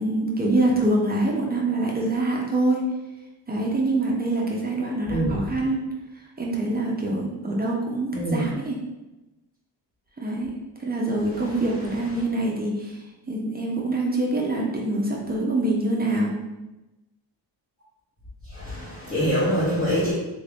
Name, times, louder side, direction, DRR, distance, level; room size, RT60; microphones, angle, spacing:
voice 1, 0.0-2.9 3.5-5.9 6.4-8.8 10.2-10.5 10.8-13.0 13.3-16.4, right 2 dB, 20° right, -2 dB, 0.6 m, -25 dB
voice 2, 5.0-5.4 8.1-8.4 18.5-20.1, equal, 20° left, -8 dB, 0.9 m, -24 dB
3.4 x 2.7 x 3.4 m, 1.0 s
cardioid pair, 105°, 47 cm